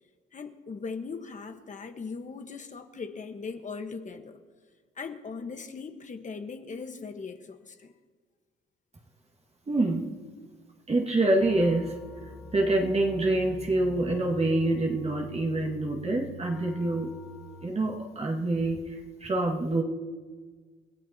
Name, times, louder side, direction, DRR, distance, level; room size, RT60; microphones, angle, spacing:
voice 1, 0.3-4.4 5.0-7.9, left 5 dB, 40° left, 1.3 m, -39 dB
voice 2, 9.7-10.1 10.9-11.9 12.5-17.1 17.6-19.8, right 2 dB, 30° right, 1.9 m, -26 dB
sound 1, 11.4-17.7, left 1 dB, 5° right, 2.6 m, -45 dB
29.5 x 15.5 x 2.9 m
cardioid pair, 90°, 20 cm